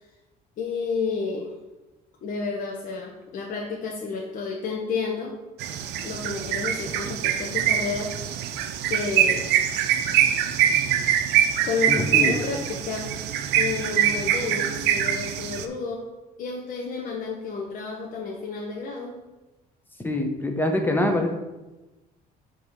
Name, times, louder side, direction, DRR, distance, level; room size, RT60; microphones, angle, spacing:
voice 1, 0.6-1.5 2.2-5.3 6.0-8.1 8.9-9.5 11.6-13.1 13.6-16.1 16.4-19.2, left 4 dB, 50° left, -1 dB, 0.9 m, -31 dB
sound 1, 5.6-15.7, right 10 dB, 85° right, 0.5 m, -24 dB
voice 2, 11.9-12.3 20.0-21.3, left 1 dB, 10° left, 3 dB, 0.9 m, -24 dB
5.8 x 3.1 x 5.5 m, 1.1 s
cardioid pair, 110°, 17 cm